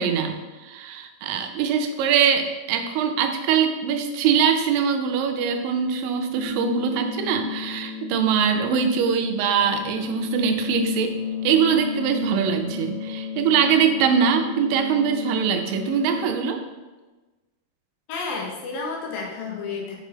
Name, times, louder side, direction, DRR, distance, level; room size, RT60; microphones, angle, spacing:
voice 1, 0.0-11.2 11.4-16.6, right 7 dB, 90° right, 6 dB, 2.3 m, -22 dB
sound 1, 6.3-16.3, left 7 dB, 50° left, 2.2 m, -33 dB
voice 2, 18.1-20.0, left 4 dB, 85° left, -1 dB, 2.6 m, -31 dB
6.3 x 4.6 x 3.3 m, 1.2 s
omnidirectional pair, 3.9 m